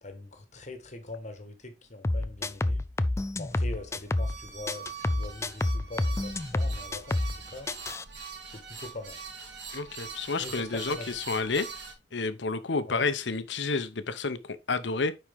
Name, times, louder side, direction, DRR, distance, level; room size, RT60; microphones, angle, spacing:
voice 1, 0.0-2.8 3.4-7.2 7.5-7.7 8.5-9.2 10.4-11.1 12.9-13.0, left 2 dB, 40° left, 1.5 m, -42 dB
sound 1, 2.0-4.4 4.7-7.4 7.7-8.0, left 2 dB, 15° left, 0.4 m, -29 dB
sound 2, 3.5-11.9, right 6 dB, 75° right, 2.1 m, -43 dB
voice 2, 9.7-11.7 12.1-15.1, left 4 dB, 75° left, 0.8 m, -30 dB
9.9 x 4.4 x 3.5 m
head